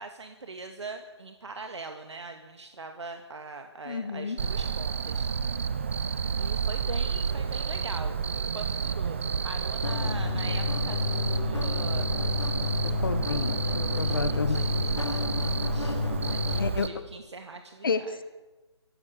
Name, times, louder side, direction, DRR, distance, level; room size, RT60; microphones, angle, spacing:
voice 1, 0.0-5.3 6.4-12.6 13.7-18.2, right 3 dB, 75° right, 5 dB, 2.2 m, -42 dB
voice 2, 3.8-4.4 12.8-14.8 16.5-16.9 17.8-18.2, left 5 dB, 50° left, 12 dB, 1.6 m, -31 dB
Cricket, 4.4-16.9, right 6 dB, 25° right, 0.7 m, -30 dB
sound 1, 9.8-16.7, left 4 dB, 85° left, 1.3 m, -30 dB
25.0 x 16.0 x 6.9 m, 1.1 s
hypercardioid pair, 175°, 15 cm